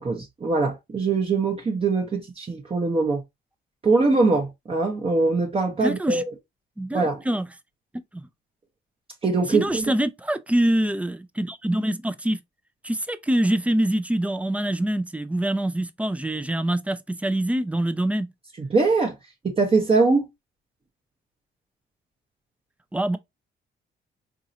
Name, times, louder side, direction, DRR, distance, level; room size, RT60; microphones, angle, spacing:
voice 1, 0.0-3.2 3.8-6.2 6.9-7.2 9.2-9.8 18.6-19.1 19.4-20.3, right 3 dB, 30° right, 0.8 m, -22 dB
voice 2, 5.8-6.2 6.8-7.5 8.1-8.3 9.5-12.4 12.8-18.3 22.9-23.2, right 1 dB, 5° right, 0.4 m, -25 dB
3.8 x 2.7 x 2.6 m
cardioid pair, 90°, 20 cm